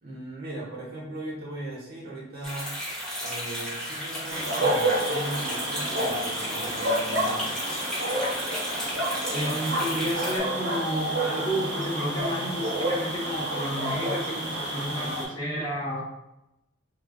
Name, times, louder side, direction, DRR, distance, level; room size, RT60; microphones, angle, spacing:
voice 1, 0.0-2.7 3.2-7.5, right 1 dB, 50° right, -6 dB, 1.3 m, -38 dB
sound 1, 2.4-10.4, equal, 5° left, 1.2 m, -34 dB
sound 2, 4.3-15.2, right 1 dB, 90° right, 1.5 m, -29 dB
voice 2, 9.3-16.0, equal, 20° left, -5 dB, 1.1 m, -31 dB
3.5 x 3.4 x 2.5 m, 0.90 s
head